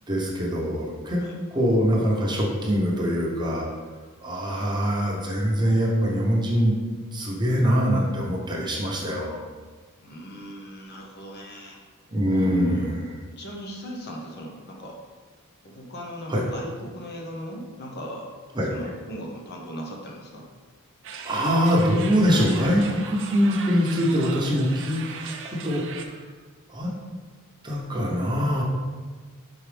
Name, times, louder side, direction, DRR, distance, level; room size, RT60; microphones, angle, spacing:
voice 1, 0.1-1.2 1.5-3.7 4.2-6.7 7.1-9.4 12.1-13.0 16.3-16.4 18.5-18.7 21.2-26.3 26.7-26.9 27.6-28.6, equal, 20° right, -3 dB, 1.0 m, -23 dB
voice 2, 10.0-11.8 12.3-12.9 13.3-15.0 15.6-18.3 18.7-20.5, right 1 dB, 50° left, -1 dB, 0.9 m, -38 dB
sound 1, 21.0-26.0, right 5 dB, 60° right, 0.6 m, -38 dB
6.2 x 4.5 x 3.4 m, 1.4 s
head